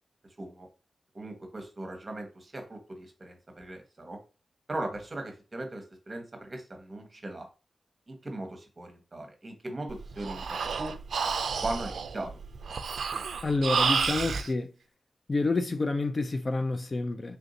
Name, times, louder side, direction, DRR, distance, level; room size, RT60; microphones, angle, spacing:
voice 1, 1.1-4.2 4.7-7.5 8.1-10.4 10.8-10.9 11.6-12.3, right 2 dB, 30° right, 1.0 m, -38 dB
Breathing, 9.9-14.5, right 5 dB, 85° right, 0.3 m, -30 dB
voice 2, 13.4-14.7 15.3-17.4, left 3 dB, 35° left, 0.3 m, -28 dB
3.4 x 2.6 x 3.9 m
wide cardioid pair, 130°, 0 cm